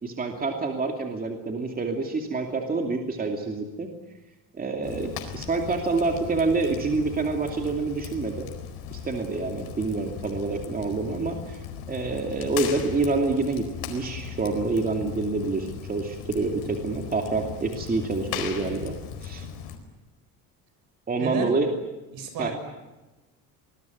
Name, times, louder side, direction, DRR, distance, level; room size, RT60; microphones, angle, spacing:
voice 1, 0.0-3.9 4.5-8.5 8.9-11.6 11.9-19.5 21.1-21.7 22.4-22.5, right 3 dB, 25° right, 3 dB, 2.6 m, -27 dB
Fire, 4.8-19.8, left 8 dB, 85° left, 4.5 m, -38 dB
voice 2, 21.2-21.6 22.1-22.5, right 6 dB, 65° right, 8 dB, 7.0 m, -31 dB
25.5 x 21.0 x 9.3 m, 1.1 s
cardioid pair, 145°, 37 cm